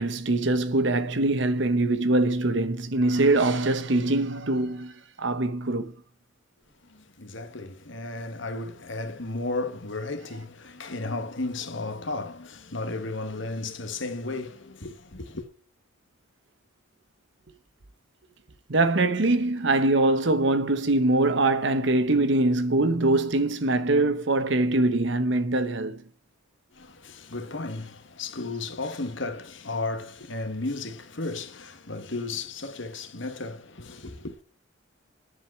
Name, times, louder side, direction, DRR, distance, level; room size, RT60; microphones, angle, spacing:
voice 1, 0.0-5.9 18.7-26.0, right 2 dB, 60° right, 1.0 m, -23 dB
voice 2, 6.8-15.5 26.7-34.4, left 2 dB, 60° left, 1.5 m, -34 dB
10.5 x 5.1 x 8.3 m
head